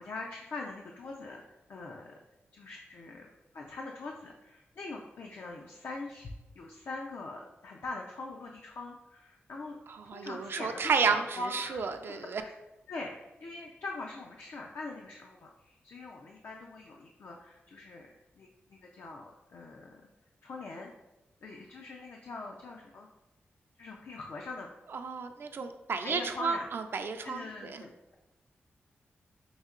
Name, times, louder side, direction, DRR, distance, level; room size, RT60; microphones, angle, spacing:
voice 1, 0.0-1.4 1.7-2.1 2.5-3.3 3.5-6.3 6.5-9.8 10.1-12.5 12.9-18.1 18.3-20.0 20.4-20.9 21.4-23.1 23.8-24.7 26.0-26.7 27.2-28.2, left 3 dB, 70° left, 0 dB, 0.4 m, -42 dB
voice 2, 9.9-12.4 24.9-27.8, right 5 dB, 60° right, 7 dB, 0.3 m, -32 dB
5.5 x 2.8 x 2.4 m, 1.0 s
cardioid pair, 75°, 4 cm